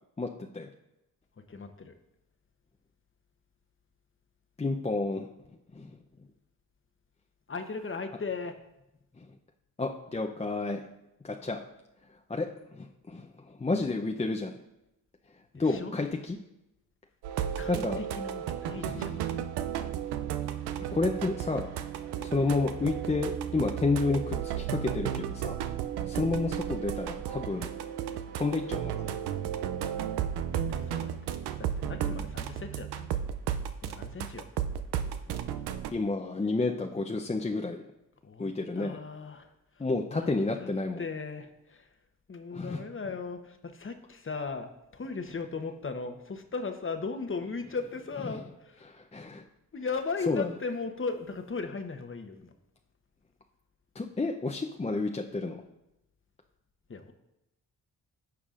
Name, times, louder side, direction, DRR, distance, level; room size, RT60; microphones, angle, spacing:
voice 1, 1.5-1.9 7.5-8.6 15.5-15.9 17.6-19.1 30.4-33.2 33.8-34.5 38.2-38.5 38.8-40.3 40.6-40.7 41.0-41.9 42.3-48.9 49.7-52.5 56.9-57.1, left 4 dB, 30° left, 7 dB, 0.9 m, -37 dB
voice 2, 4.6-5.3 5.7-6.0 9.2-9.3 9.8-10.8 11.2-11.6 12.3-12.5 12.7-14.6 15.5-16.4 17.7-18.0 18.8-19.5 20.9-21.7 22.2-25.6 26.1-27.7 28.4-29.2 35.9-37.9 38.4-39.0 39.8-41.1 42.5-42.8 48.3-48.4 48.9-49.4 50.3-50.5 53.9-55.6, left 3 dB, 15° left, 2 dB, 0.6 m, -30 dB
sound 1, 17.2-35.9, right 9 dB, 85° right, 0.5 m, -34 dB
14.0 x 4.8 x 2.5 m, 0.90 s
supercardioid pair, 50°, 39 cm